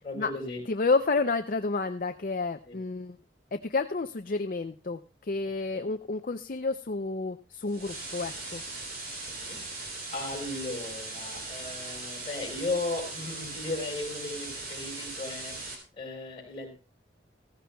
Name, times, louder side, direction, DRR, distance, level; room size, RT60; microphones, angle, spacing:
voice 1, 0.0-0.6 2.7-2.8 5.6-5.8 9.3-9.6 10.1-15.5 16.0-16.8, left 2 dB, 30° left, 1 dB, 4.7 m, -36 dB
voice 2, 0.7-3.2 3.5-8.6, left 3 dB, 50° left, 8 dB, 0.5 m, -30 dB
sound 1, 7.7-15.7, right 2 dB, 55° right, 3.6 m, -39 dB
16.0 x 15.5 x 2.3 m, 0.34 s
head